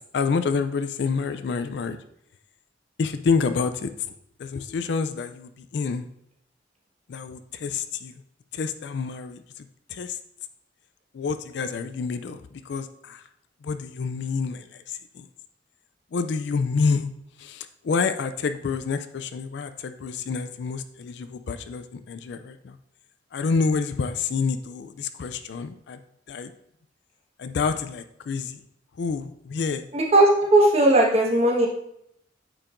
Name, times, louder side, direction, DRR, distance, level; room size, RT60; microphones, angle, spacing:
voice 1, 0.1-2.0 3.0-3.9 4.4-6.1 7.1-8.1 8.5-9.4 9.9-10.2 11.1-12.4 12.7-13.2 13.6-14.6 15.2-15.3 16.1-17.1 17.4-22.8 23.3-26.0 26.3-26.5 27.4-28.6 29.0-29.9, left 5 dB, 65° left, 10 dB, 0.4 m, -28 dB
voice 2, 29.9-31.7, right 1 dB, 35° right, -2 dB, 1.3 m, -18 dB
8.7 x 4.6 x 2.5 m, 0.75 s
head